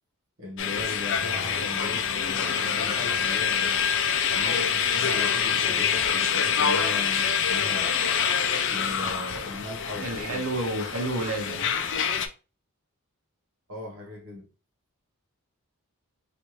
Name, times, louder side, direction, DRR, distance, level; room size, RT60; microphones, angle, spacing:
voice 1, 0.4-3.8 4.3-8.0 8.7-10.5 13.7-14.5, left 2 dB, 65° right, 1.2 m, -39 dB
sound 1, 0.6-12.3, left 7 dB, 55° left, 0.5 m, -26 dB
voice 2, 10.0-11.7, right 1 dB, 80° right, 1.4 m, -30 dB
3.2 x 2.9 x 3.1 m
head